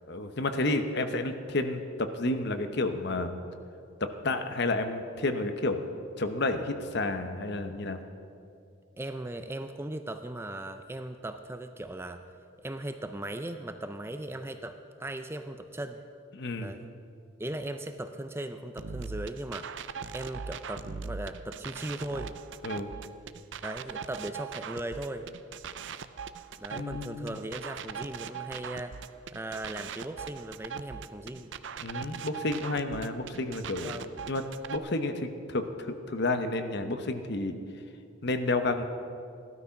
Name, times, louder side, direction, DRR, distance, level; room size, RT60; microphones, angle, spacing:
voice 1, 0.1-3.4 4.0-5.9 6.2-8.0 16.3-16.7 22.6-22.9 26.7-27.4 31.8-34.0 34.3-37.6 38.2-38.8, left 2 dB, 55° left, 8 dB, 1.0 m, -31 dB
voice 2, 9.0-12.2 12.6-16.0 16.6-16.9 17.4-19.7 20.1-22.3 23.6-25.3 26.6-29.0 29.3-31.5 33.8-34.1, right 1 dB, 10° right, 8 dB, 0.4 m, -38 dB
sound 1, 18.8-34.8, right 6 dB, 60° right, 0.5 m, -40 dB
16.0 x 12.5 x 5.8 m, 2.5 s
head